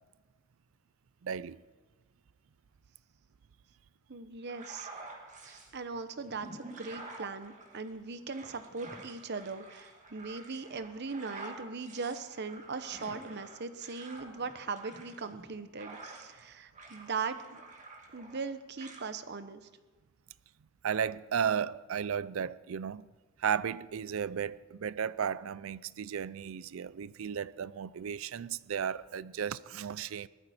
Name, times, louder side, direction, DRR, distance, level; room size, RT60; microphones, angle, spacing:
voice 1, 1.2-1.6 20.8-23.1 23.4-30.3, right 7 dB, 75° right, 0.4 m, -34 dB
voice 2, 4.1-4.9 5.4-17.6 18.1-19.6, right 4 dB, 55° right, 0.9 m, -39 dB
sound 1, 4.4-5.7 6.2-16.5 16.7-18.5 18.8-19.0, right 2 dB, 35° right, 2.3 m, -49 dB
20.0 x 14.0 x 4.3 m
head